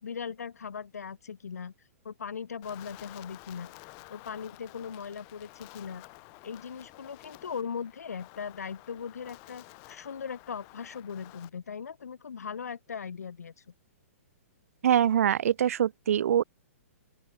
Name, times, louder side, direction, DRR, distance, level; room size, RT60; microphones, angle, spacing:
voice 1, 0.0-1.7 2.0-3.8 4.1-6.0 6.4-13.5, left 6 dB, 90° left, 2.1 m, -39 dB
Wind, 2.6-11.5, left 38 dB, 35° left, 7.7 m, -51 dB
voice 2, 14.8-16.4, right 9 dB, 70° right, 0.7 m, -24 dB
open air
hypercardioid pair, 150°, 8 cm